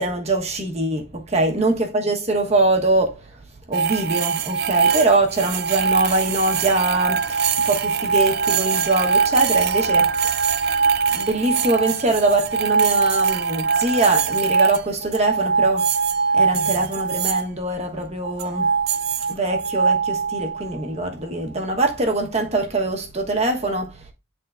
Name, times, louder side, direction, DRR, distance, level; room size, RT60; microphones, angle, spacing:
voice 1, 0.0-3.2 3.7-10.2 11.1-15.9 16.3-18.7 19.3-24.0, right 2 dB, 30° right, 1.2 m, -23 dB
sound 1, 3.7-17.4 18.2-20.8, right 5 dB, 50° right, 0.4 m, -22 dB
10.5 x 3.7 x 2.5 m
head